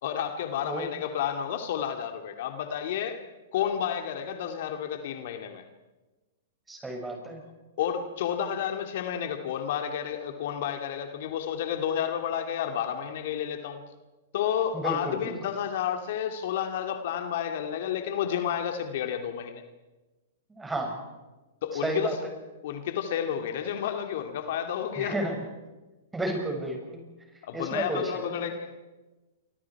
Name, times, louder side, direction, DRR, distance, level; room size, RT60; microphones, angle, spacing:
voice 1, 0.0-3.2 3.5-5.6 7.8-13.8 14.3-19.6 21.6-22.2 22.6-25.2 27.4-28.7, left 9 dB, 60° left, 5 dB, 2.4 m, -31 dB
voice 2, 6.7-7.4 14.7-15.3 20.5-21.0 21.8-22.1 25.0-25.3 26.1-27.0 27.5-28.1, right 1 dB, 10° right, 2 dB, 6.8 m, -31 dB
29.0 x 25.5 x 4.8 m, 1.1 s
hypercardioid pair, 125°, 0 cm